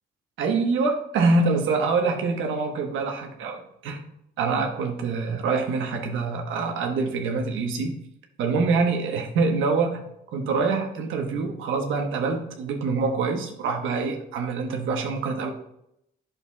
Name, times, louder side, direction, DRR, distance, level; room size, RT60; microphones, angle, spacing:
voice 1, 0.4-4.1 4.4-8.0 8.4-10.0 10.3-15.5, right 4 dB, 80° right, 3 dB, 1.1 m, -25 dB
8.5 x 6.5 x 2.3 m, 0.77 s
cardioid pair, 90°, 20 cm